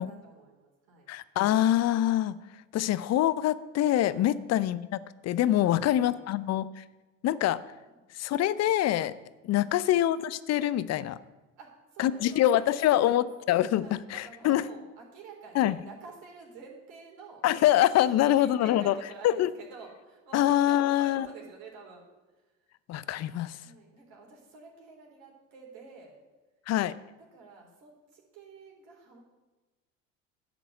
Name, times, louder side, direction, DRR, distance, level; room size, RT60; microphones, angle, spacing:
voice 1, 0.0-1.1 4.2-4.4 5.7-6.3 7.9-8.1 9.6-9.8 11.5-13.3 13.8-17.4 18.0-22.0 22.3-22.7 23.6-26.2 27.3-29.2, right 4 dB, 60° right, 0 dB, 3.7 m, -49 dB
voice 2, 1.1-2.4 2.7-6.8 7.2-7.6 8.1-9.1 9.4-11.2 12.0-14.6 15.5-15.8 17.4-18.9 19.2-19.5 20.3-21.3 22.9-23.6 26.7-26.9, left 12 dB, 45° left, 16 dB, 0.7 m, -25 dB
10.5 x 6.0 x 8.0 m, 1.2 s
hypercardioid pair, 70°, 38 cm